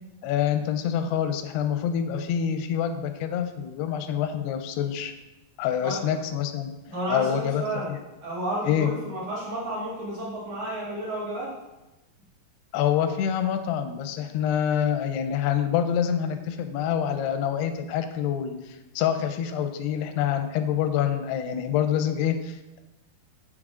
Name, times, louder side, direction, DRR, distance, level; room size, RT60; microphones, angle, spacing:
voice 1, 0.2-5.1 5.6-6.7 7.1-7.6 7.9-8.0 8.7-8.9 12.7-22.8, left 9 dB, 90° left, 8 dB, 2.7 m, -26 dB
voice 2, 6.9-11.5, right 1 dB, 50° right, -6 dB, 2.4 m, -31 dB
8.9 x 4.9 x 3.7 m, 1.0 s
omnidirectional pair, 4.6 m